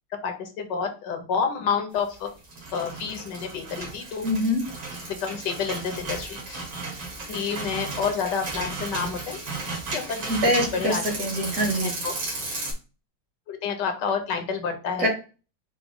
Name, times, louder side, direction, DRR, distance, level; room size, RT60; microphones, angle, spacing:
voice 1, 0.2-2.3 2.7-4.3 5.1-6.7 7.3-9.4 9.9-11.0 11.8-12.1 13.5-15.1, left 6 dB, 80° left, 6 dB, 1.5 m, -29 dB
sound 1, 2.3-12.7, right 3 dB, 85° right, 2.4 m, -34 dB
voice 2, 4.2-4.6 10.3-11.9 15.0-15.1, equal, 55° right, 0 dB, 2.4 m, -24 dB
5.9 x 2.2 x 3.7 m, 0.33 s
omnidirectional pair, 1.9 m